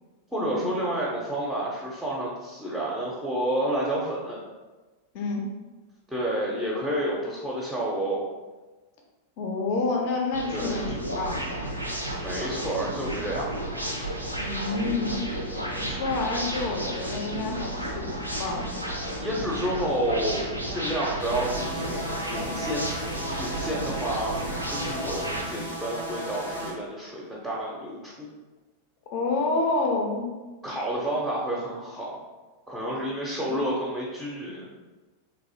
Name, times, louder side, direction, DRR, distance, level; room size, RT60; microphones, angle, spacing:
voice 1, 0.3-4.4 6.1-8.2 10.5-10.8 12.2-13.5 15.6-16.2 19.2-22.9 23.2-24.3 24.7-28.3 30.6-32.2 32.7-34.7, right 1 dB, 5° right, -5 dB, 0.6 m, -30 dB
voice 2, 9.4-11.5 14.4-15.2 15.8-18.8 29.1-30.3 33.5-33.6, left 3 dB, 45° left, 1 dB, 0.5 m, -29 dB
sound 1, 10.3-25.4, right 1 dB, 90° right, 0.4 m, -32 dB
sound 2, 21.2-26.7, right 1 dB, 80° left, 0.7 m, -35 dB
3.1 x 2.6 x 2.7 m, 1.2 s
figure-of-eight pair, 90°, 0 cm